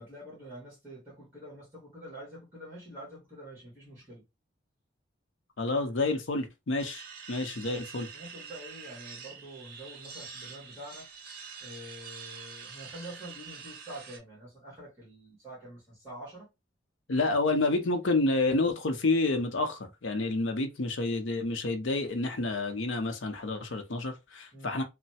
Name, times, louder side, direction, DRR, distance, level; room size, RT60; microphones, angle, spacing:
voice 1, 0.0-4.2 7.6-11.1 11.6-16.5 24.5-24.8, right 1 dB, 10° right, 1.5 m, -46 dB
voice 2, 5.6-8.1 17.1-24.8, left 2 dB, 70° left, 0.7 m, -29 dB
sound 1, 6.8-14.2, right 6 dB, 50° right, 0.7 m, -46 dB
3.1 x 2.1 x 2.7 m
head